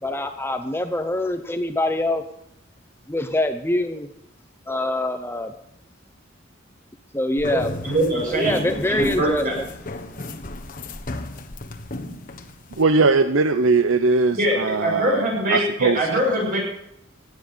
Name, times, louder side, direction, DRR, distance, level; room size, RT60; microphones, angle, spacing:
voice 1, 0.0-2.2 3.1-4.1 4.7-5.5 7.1-7.7 8.3-9.4, left 1 dB, 10° left, 8 dB, 0.7 m, -24 dB
sound 1, 7.4-12.8, left 1 dB, 45° left, 1.2 m, -34 dB
voice 2, 7.5-9.5 14.3-14.5 14.8-16.6, right 1 dB, 45° right, -2 dB, 7.6 m, -23 dB
voice 3, 12.8-16.1, right 3 dB, 80° right, 10 dB, 0.7 m, -20 dB
17.0 x 9.7 x 6.7 m, 0.78 s
head